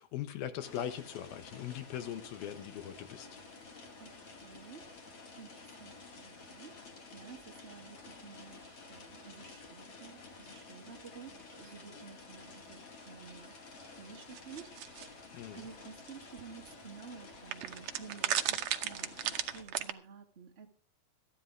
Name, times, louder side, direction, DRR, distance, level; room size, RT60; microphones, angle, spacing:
voice 1, 0.0-3.3 15.3-15.7, left 10 dB, 85° left, 3.1 m, -40 dB
sound 1, 0.6-19.6, left 3 dB, 45° left, 2.9 m, -52 dB
voice 2, 4.0-4.9 5.4-13.5 14.0-15.2 15.5-20.7, right 6 dB, 30° right, 1.3 m, -52 dB
sound 2, 14.3-15.1 16.1-16.2 16.4-16.5 17.5-19.9, right 11 dB, 70° right, 1.7 m, -34 dB
14.5 x 11.0 x 4.7 m
omnidirectional pair, 4.2 m